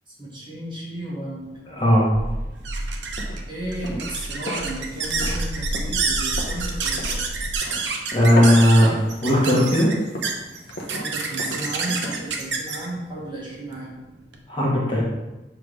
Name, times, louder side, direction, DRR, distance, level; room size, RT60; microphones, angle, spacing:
voice 1, 0.2-1.5 3.5-7.2 10.9-13.9, right 1 dB, 30° right, -5 dB, 2.0 m, -34 dB
sound 1, 1.5-14.4, right 4 dB, 80° right, 0.9 m, -29 dB
voice 2, 1.7-2.1 8.1-9.0 9.2-9.9 14.5-15.0, equal, 30° left, -4 dB, 1.4 m, -17 dB
sound 2, 2.1-7.5, equal, 55° right, 0.6 m, -32 dB
sound 3, 3.0-12.6, equal, 60° left, 1.0 m, -36 dB
7.1 x 3.4 x 5.0 m, 1.1 s
head